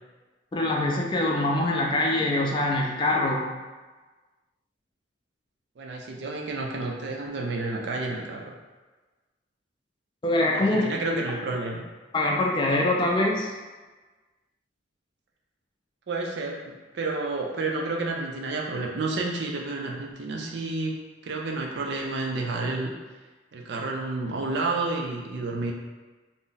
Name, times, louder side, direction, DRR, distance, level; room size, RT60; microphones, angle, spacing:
voice 1, 0.5-3.5 10.2-10.9 12.1-13.5, left 1 dB, 25° left, -1 dB, 0.3 m, -24 dB
voice 2, 5.8-8.5 10.5-11.8 16.1-20.9 21.2-22.9 23.5-25.7, right 3 dB, 60° right, 0 dB, 0.4 m, -30 dB
2.5 x 2.0 x 3.8 m, 1.3 s
head